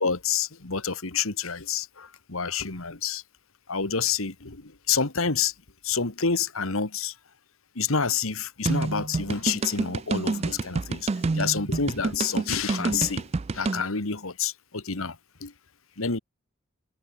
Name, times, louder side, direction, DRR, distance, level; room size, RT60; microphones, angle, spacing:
voice 1, 0.0-3.2 3.7-5.5 5.8-7.1 7.8-11.1 11.3-13.3 13.5-15.2 15.4-15.5 16.0-16.2, left 6 dB, 80° left, 2.0 m, -28 dB
sound 1, 8.7-13.8, right 3 dB, 30° right, 0.3 m, -28 dB
head